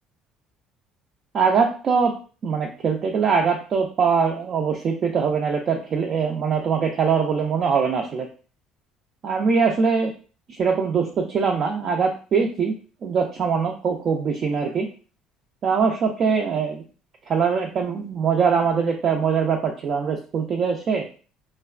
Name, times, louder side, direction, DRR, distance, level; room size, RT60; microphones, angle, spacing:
voice 1, 1.3-2.1 2.4-8.3 9.2-10.1 10.6-12.7 13.0-14.9 15.6-16.8 17.3-21.0, right 5 dB, 35° right, 1 dB, 0.3 m, -22 dB
3.1 x 2.1 x 2.3 m, 0.37 s
cardioid pair, 160°, 0 cm